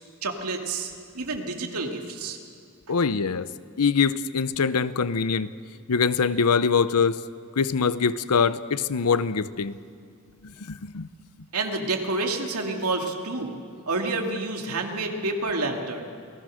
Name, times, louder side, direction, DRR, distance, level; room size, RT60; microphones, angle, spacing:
voice 1, 0.2-2.4 11.5-13.6 13.9-16.0, right 2 dB, 80° right, 2 dB, 2.4 m, -29 dB
voice 2, 2.9-3.5 3.8-5.5 5.9-7.2 7.6-9.7 10.4-11.1, left 5 dB, 80° left, 15 dB, 0.7 m, -23 dB
28.5 x 18.5 x 6.5 m, 2.2 s
head